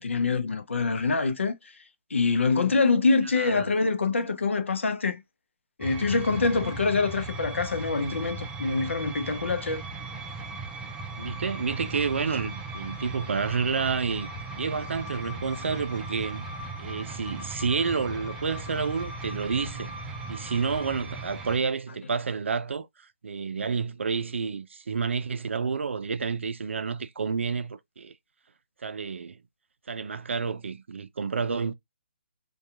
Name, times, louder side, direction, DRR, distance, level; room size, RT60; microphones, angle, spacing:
voice 1, 0.0-1.8 2.1-5.2 5.8-9.8, left 4 dB, 85° left, 0.6 m, -25 dB
voice 2, 3.3-3.7 11.2-14.3 14.6-16.5 16.8-20.0 20.3-28.1 28.8-29.4 29.9-31.7, right 5 dB, 80° right, 0.4 m, -29 dB
sound 1, 5.8-21.6, right 2 dB, 10° right, 0.4 m, -38 dB
2.7 x 2.3 x 2.4 m
hypercardioid pair, 150°, 6 cm